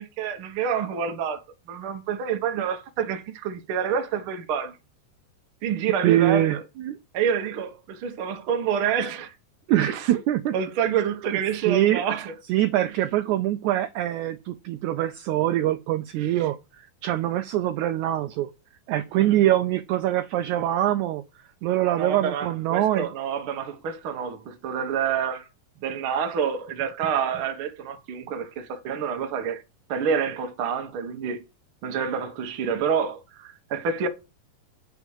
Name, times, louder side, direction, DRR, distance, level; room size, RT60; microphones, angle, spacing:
voice 1, 0.0-4.8 5.6-6.6 7.1-9.3 9.9-10.2 10.5-12.3 16.2-16.5 19.1-19.4 22.0-25.5 25.8-29.6 29.9-31.4 31.8-34.1, right 7 dB, 60° right, 1.5 m, -28 dB
voice 2, 6.0-7.0 9.7-10.5 11.7-12.0 12.5-16.6 17.0-18.5 18.9-21.2 21.6-23.1, right 13 dB, 85° right, 1.7 m, -23 dB
8.1 x 4.8 x 7.1 m
omnidirectional pair, 4.1 m